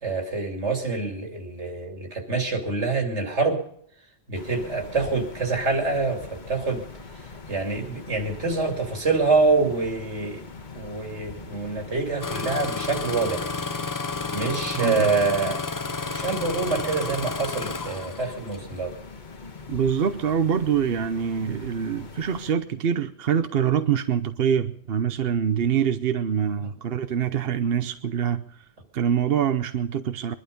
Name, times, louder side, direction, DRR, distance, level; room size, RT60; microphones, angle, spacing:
voice 1, 0.0-3.6 4.3-6.8 7.5-10.4 10.7-13.5 14.3-15.6 16.1-18.9, right 3 dB, 80° right, 3 dB, 3.2 m, -26 dB
sound 1, 4.3-22.5, left 4 dB, 45° left, 1.5 m, -43 dB
Engine starting, 12.2-18.7 19.6-19.9 20.5-20.9 21.5-21.7, left 4 dB, 25° left, 0.5 m, -31 dB
voice 2, 14.8-15.1 19.7-28.6 28.9-30.3, right 8 dB, 60° right, 10 dB, 1.0 m, -25 dB
22.5 x 11.5 x 5.3 m, 0.64 s
omnidirectional pair, 1.2 m